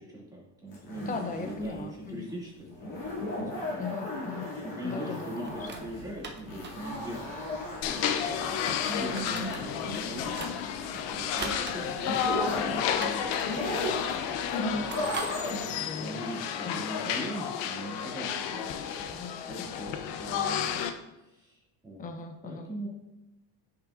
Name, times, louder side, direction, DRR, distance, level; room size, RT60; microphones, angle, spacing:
voice 1, 0.0-3.8 4.6-7.7 8.5-13.3 14.7-15.4 15.8-20.8 21.2-22.1 22.4-22.9, right 1 dB, 10° right, -5 dB, 2.2 m, -41 dB
sound 1, 0.7-15.9, left 1 dB, 45° left, 2.2 m, -37 dB
voice 2, 1.1-2.2 3.8-4.5 4.8-5.3 14.4-14.8 15.7-16.3 16.6-16.9 19.2-19.4 22.0-22.7, left 4 dB, 20° left, 5 dB, 0.6 m, -37 dB
sound 2, 5.4-15.3, right 5 dB, 25° right, 0.7 m, -44 dB
sound 3, 7.8-20.9, left 8 dB, 75° left, 0.7 m, -32 dB
8.7 x 5.8 x 2.4 m, 0.96 s
cardioid pair, 140°, 43 cm